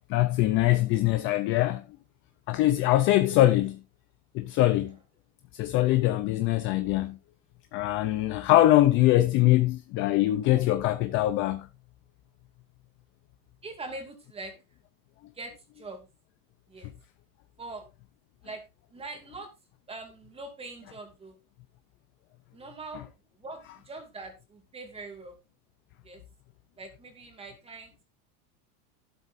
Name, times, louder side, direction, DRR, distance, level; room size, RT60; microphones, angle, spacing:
voice 1, 0.1-1.8 2.5-3.8 4.3-5.0 5.5-7.2 7.7-11.7, left 15 dB, 30° left, 0.5 m, -23 dB
voice 2, 13.6-14.5 15.3-16.1 16.7-16.9 17.6-17.9 18.4-18.6 18.9-19.5 19.9-21.4 22.5-23.1 23.4-25.4 26.0-26.2 26.8-27.9, right 3 dB, 15° right, 2.4 m, -42 dB
12.0 x 11.5 x 2.6 m
supercardioid pair, 165°, 44 cm